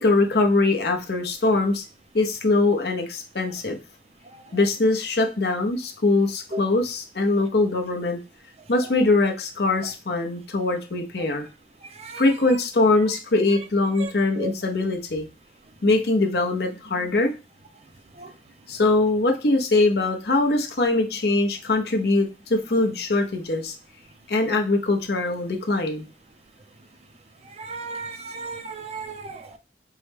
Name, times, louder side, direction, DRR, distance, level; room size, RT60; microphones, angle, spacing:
voice 1, 0.0-1.8 2.1-3.8 4.5-8.2 8.7-11.5 12.2-15.3 15.8-17.3 18.7-23.7 24.3-26.1, left 2 dB, 60° left, 0.8 m, -22 dB
voice 2, 27.6-29.6, right 2 dB, 35° right, 0.4 m, -34 dB
4.6 x 2.1 x 3.3 m
head